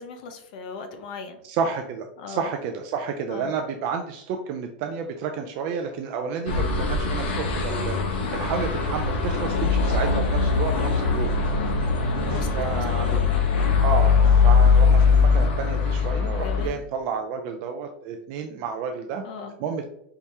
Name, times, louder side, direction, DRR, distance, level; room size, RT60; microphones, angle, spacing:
voice 1, 0.0-1.4 2.2-2.5 3.3-3.5 10.9-11.2 11.6-11.8 12.3-12.8 16.4-16.8 19.2-19.6, left 5 dB, 45° left, 7 dB, 0.7 m, -38 dB
voice 2, 1.4-11.3 12.3-13.2 13.8-19.2 19.6-19.9, right 6 dB, 30° right, 5 dB, 0.3 m, -31 dB
sound 1, 6.5-16.7, left 5 dB, 70° left, 0.9 m, -21 dB
4.6 x 3.4 x 2.8 m, 0.75 s
supercardioid pair, 180°, 6 cm